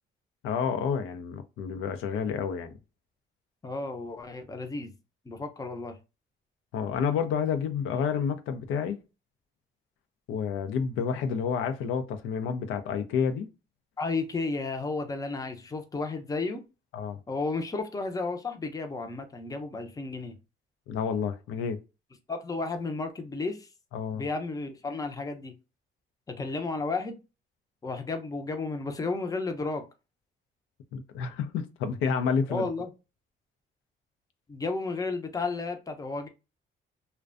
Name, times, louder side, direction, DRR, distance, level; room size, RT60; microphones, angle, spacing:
voice 1, 0.4-2.7 6.7-9.0 10.3-13.5 16.9-17.2 20.9-21.8 23.9-24.2 30.9-32.7, left 6 dB, 90° left, 0.4 m, -29 dB
voice 2, 3.6-4.9 5.3-6.0 14.0-16.6 17.3-20.3 22.3-23.7 24.1-25.5 26.3-27.2 27.8-29.8 32.5-32.9 34.5-36.3, left 3 dB, 20° left, 0.5 m, -33 dB
2.4 x 2.2 x 2.4 m
cardioid pair, 90°, 20 cm